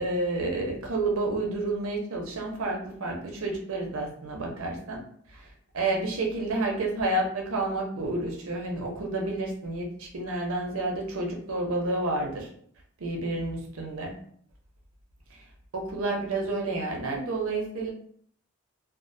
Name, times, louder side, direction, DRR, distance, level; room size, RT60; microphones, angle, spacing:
voice 1, 0.0-5.0 5.3-5.5 5.7-12.5 13.0-14.1 15.7-17.9, right 2 dB, 85° right, 1 dB, 0.6 m, -30 dB
2.3 x 2.1 x 2.5 m, 0.62 s
head